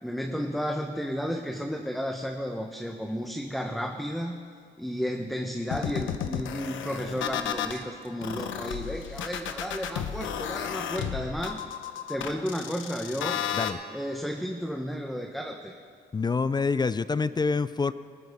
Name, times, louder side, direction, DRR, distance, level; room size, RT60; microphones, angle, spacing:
voice 1, 0.0-4.4 4.8-11.6 12.1-13.4 13.9-15.8, equal, ahead, 3 dB, 0.9 m, -33 dB
sound 1, 5.7-7.8 8.2-13.7, left 9 dB, 75° left, 0.9 m, -33 dB
voice 2, 16.1-17.9, left 4 dB, 20° left, 15 dB, 0.4 m, -26 dB
19.5 x 13.5 x 3.6 m, 2.1 s
cardioid pair, 90°, 20 cm